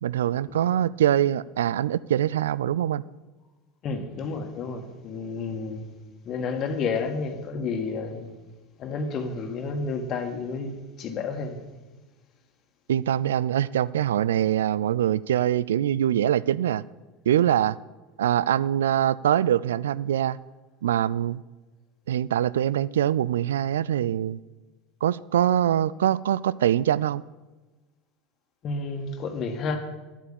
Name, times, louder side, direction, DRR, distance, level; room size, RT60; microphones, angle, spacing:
voice 1, 0.0-3.0 12.9-16.8 17.3-17.8 18.2-20.4 20.8-21.4 22.1-24.4 25.0-27.2, right 11 dB, 75° right, 0.3 m, -23 dB
voice 2, 3.8-5.9 6.2-8.3 8.8-11.6 28.6-29.8, left 4 dB, 45° left, 1.8 m, -31 dB
11.0 x 8.3 x 6.9 m
figure-of-eight pair, 75°, 0 cm